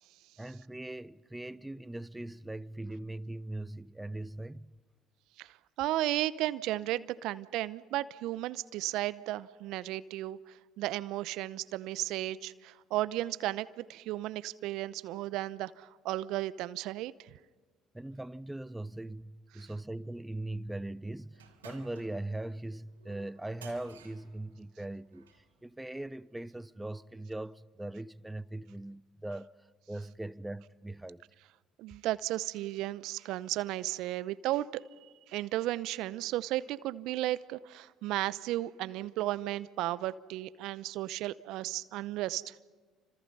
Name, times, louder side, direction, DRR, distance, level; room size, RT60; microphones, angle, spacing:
voice 1, 0.4-4.7 17.9-31.2, right 1 dB, 10° right, 0.8 m, -40 dB
voice 2, 5.4-17.3 19.5-19.7 31.8-34.8 35.3-42.5, right 15 dB, 65° right, 0.7 m, -34 dB
sound 1, 21.3-25.5, right 6 dB, 90° right, 3.2 m, -56 dB
30.0 x 26.5 x 5.5 m
hypercardioid pair, 55°, 0 cm